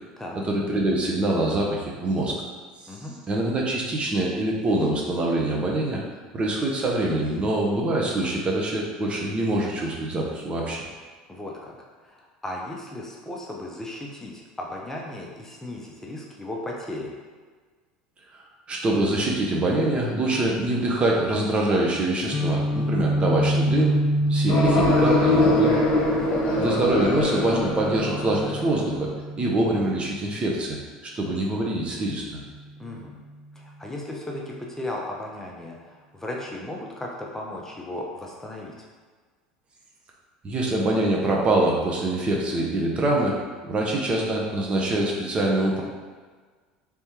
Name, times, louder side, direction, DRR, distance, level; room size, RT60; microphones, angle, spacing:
voice 1, 0.4-2.4 3.3-6.0 6.3-10.8 18.7-24.0 24.3-25.8 26.6-29.1 29.4-30.8 31.0-32.4 40.4-43.4 43.7-45.8, right 1 dB, 30° right, -2 dB, 0.8 m, -24 dB
voice 2, 11.3-11.7 12.0-17.1 26.2-26.6 32.8-33.2 33.5-38.7, left 1 dB, 10° left, -2 dB, 0.6 m, -36 dB
Guitar, 22.3-30.2, right 1 dB, 30° left, 1.3 m, -27 dB
sound 1, 24.5-28.8, left 2 dB, 50° left, 1.1 m, -23 dB
3.4 x 3.2 x 3.0 m, 1.5 s
hypercardioid pair, 80°, 4 cm